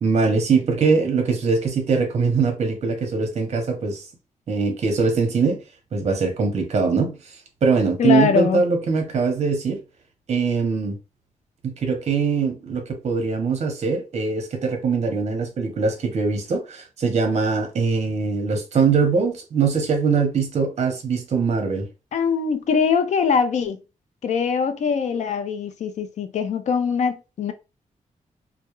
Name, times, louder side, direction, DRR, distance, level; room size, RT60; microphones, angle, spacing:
voice 1, 0.0-4.0 4.5-5.6 5.9-9.8 10.3-11.0 11.6-21.9, right 5 dB, 50° right, 0.7 m, -22 dB
voice 2, 8.0-8.6 22.1-23.8 24.2-27.5, left 6 dB, 60° left, 0.4 m, -22 dB
2.3 x 2.0 x 2.9 m
wide cardioid pair, 140°, 14 cm